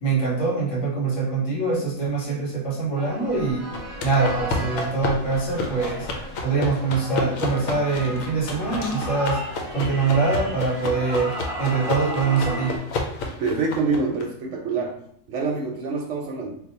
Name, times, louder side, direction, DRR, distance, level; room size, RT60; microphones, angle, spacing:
voice 1, 0.0-3.7 4.0-6.1 6.4-9.4 9.7-12.8, right 4 dB, 60° left, -5 dB, 1.5 m, -24 dB
sound 1, 3.0-12.8, right 1 dB, 30° right, 0.7 m, -34 dB
sound 2, 3.7-14.2, left 3 dB, 80° left, 1.0 m, -31 dB
voice 2, 13.4-15.0 15.3-16.5, right 4 dB, 70° right, 1 dB, 0.9 m, -26 dB
2.7 x 2.2 x 4.1 m, 0.65 s
omnidirectional pair, 1.4 m